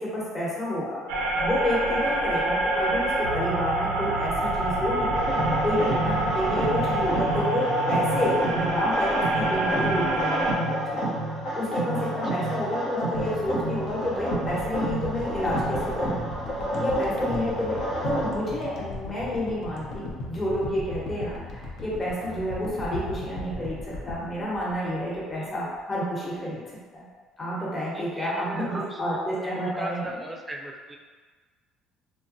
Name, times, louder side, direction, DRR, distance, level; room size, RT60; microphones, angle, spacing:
voice 1, 0.0-16.2 16.5-17.8 18.0-26.6 26.9-27.0 27.4-30.1, equal, 30° left, -6 dB, 1.0 m, -30 dB
sound 1, 1.1-10.5, right 1 dB, 85° right, 0.4 m, -26 dB
sound 2, 5.1-18.3, right 1 dB, 75° left, 0.9 m, -29 dB
sound 3, 13.1-25.5 25.8-25.9, left 2 dB, 60° left, 0.5 m, -38 dB
voice 2, 27.9-29.2 29.5-31.0, right 2 dB, 20° right, 1 dB, 0.4 m, -38 dB
2.8 x 2.2 x 2.6 m, 1.5 s
supercardioid pair, 85°, 0 cm